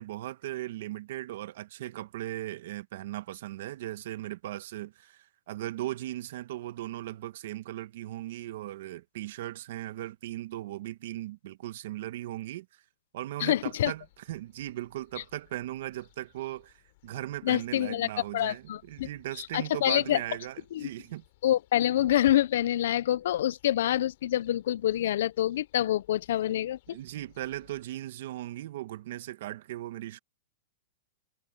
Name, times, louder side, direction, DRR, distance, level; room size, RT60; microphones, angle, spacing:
voice 1, 0.0-12.8 13.1-21.2 26.9-30.2, right 14 dB, 60° right, 1.1 m, -38 dB
voice 2, 13.4-13.9 17.4-19.1 19.4-20.2 20.7-20.9 21.4-27.0, left 12 dB, 65° left, 0.4 m, -26 dB
sound 1, 13.6-27.9, left 20 dB, 50° left, 4.3 m, -62 dB
hypercardioid pair, 150°, 0 cm